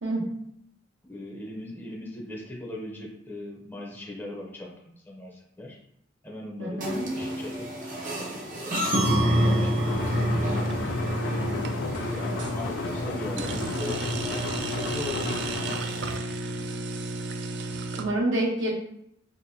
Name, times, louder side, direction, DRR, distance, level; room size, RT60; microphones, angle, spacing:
voice 1, 0.0-0.3 6.6-7.1 17.9-18.7, right 1 dB, 90° right, -4 dB, 1.1 m, -27 dB
voice 2, 1.0-5.8 6.2-6.8 7.1-7.7 8.7-9.0 9.4-10.2 11.6-15.4, left 1 dB, 10° left, -2 dB, 0.5 m, -39 dB
sound 1, 6.8-16.2, equal, 45° right, 0.8 m, -28 dB
sound 2, 9.9-15.8, left 4 dB, 70° left, 0.3 m, -34 dB
sound 3, 10.6-11.1 11.5-12.5 13.4-18.0, right 3 dB, 65° right, 0.4 m, -33 dB
4.2 x 2.5 x 2.6 m, 0.72 s
head